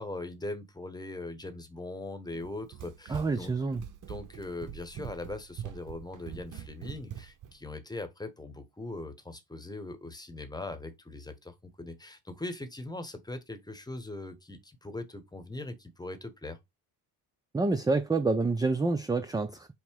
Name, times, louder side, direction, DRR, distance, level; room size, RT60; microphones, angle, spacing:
voice 1, 0.0-3.5 4.1-16.6, left 2 dB, 10° left, 1.1 m, -40 dB
Run, 2.3-7.6, right 10 dB, 55° right, 0.9 m, -43 dB
voice 2, 3.1-3.8 17.5-19.7, right 3 dB, 10° right, 0.4 m, -27 dB
5.5 x 2.1 x 4.6 m
supercardioid pair, 75°, 38 cm